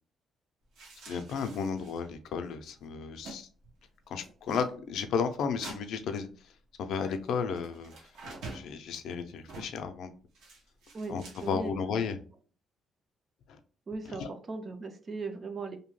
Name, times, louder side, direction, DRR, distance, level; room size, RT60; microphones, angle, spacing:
sound 1, 0.8-2.1 2.4-2.5 2.8-3.4 3.6-3.9 4.2-4.7 5.6-5.8 7.5-8.7 9.5-9.8 10.3-11.7, right 3 dB, 75° right, 0.8 m, -46 dB
voice 1, 1.1-3.5 4.1-6.3 6.8-7.9 8.5-10.1 11.1-12.2 13.5-13.6 14.1-14.3, left 6 dB, 70° left, 8 dB, 0.4 m, -33 dB
voice 2, 10.9-11.8 13.9-15.8, right 3 dB, 30° right, 8 dB, 0.4 m, -38 dB
2.7 x 2.1 x 3.0 m, 0.40 s
cardioid pair, 150°, 0 cm